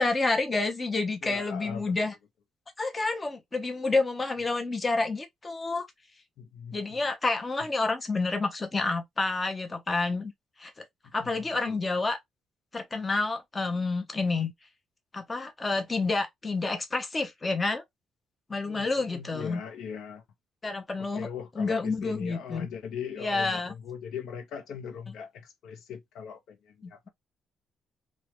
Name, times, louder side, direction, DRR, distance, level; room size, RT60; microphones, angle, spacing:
voice 1, 0.0-2.1 2.8-5.9 6.7-10.3 10.6-10.7 11.1-12.2 12.7-14.5 15.1-17.8 18.5-19.6 20.6-21.3 21.6-22.7 23.2-23.7 26.8-26.9, left 3 dB, 20° left, 0.5 m, -29 dB
voice 2, 1.2-2.0 6.4-6.8 11.0-11.3 11.7-11.9 18.5-20.2 21.0-27.1, left 7 dB, 75° left, 0.5 m, -40 dB
2.3 x 2.0 x 2.9 m
cardioid pair, 130°, 0 cm